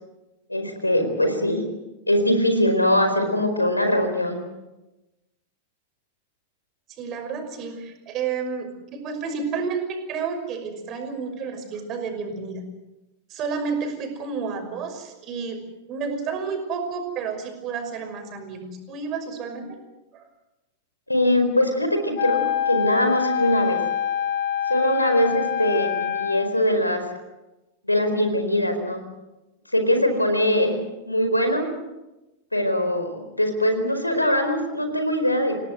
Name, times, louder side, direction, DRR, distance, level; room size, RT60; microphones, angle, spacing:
voice 1, 0.5-1.6 2.1-4.4 21.1-23.8 24.7-27.0 27.8-29.0 29.7-30.8 31.0-31.6 32.5-35.6, left 1 dB, 85° left, 7 dB, 4.5 m, -22 dB
voice 2, 6.9-12.6 13.3-15.6 15.9-19.8 20.1-20.3, right 5 dB, 35° right, 6 dB, 5.8 m, -30 dB
Wind instrument woodwind instrument, 22.2-26.6, left 9 dB, 55° left, 4.2 m, -25 dB
28.5 x 18.0 x 7.8 m, 1.0 s
figure-of-eight pair, 90°, 0 cm